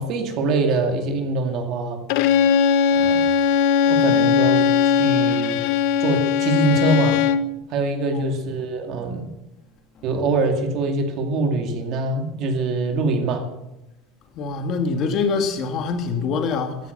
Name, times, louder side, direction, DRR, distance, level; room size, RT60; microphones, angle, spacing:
voice 1, 0.0-2.0 2.9-3.3 3.9-5.6 6.0-7.2 7.7-9.3 10.0-13.5, right 3 dB, 40° right, 2.3 m, -24 dB
Bowed string instrument, 2.1-7.5, left 7 dB, 60° left, 0.8 m, -19 dB
voice 2, 8.1-8.4 14.4-16.8, left 4 dB, 35° left, 2.2 m, -24 dB
15.0 x 13.0 x 6.8 m
cardioid pair, 175°, 0 cm